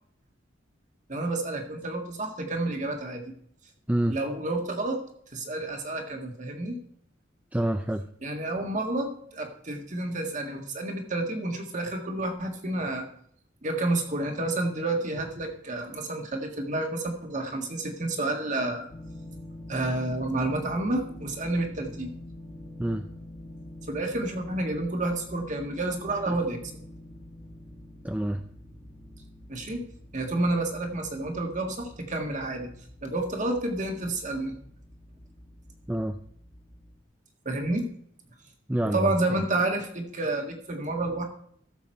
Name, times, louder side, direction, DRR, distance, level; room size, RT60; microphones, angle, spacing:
voice 1, 1.1-3.2 4.1-5.0 5.3-6.8 8.2-13.1 13.6-18.9 19.7-22.1 23.9-26.6 29.5-29.8 30.1-32.7 33.0-34.5 37.5-37.9 38.9-41.3, right 2 dB, 40° right, 4 dB, 1.7 m, -30 dB
voice 2, 7.5-8.1 22.8-23.1 26.3-26.4 28.0-28.4 35.9-36.2 38.7-39.4, right 1 dB, 5° right, 7 dB, 0.4 m, -28 dB
sound 1, 18.9-37.0, left 1 dB, 15° left, 1.6 m, -46 dB
13.5 x 7.1 x 4.5 m, 0.64 s
head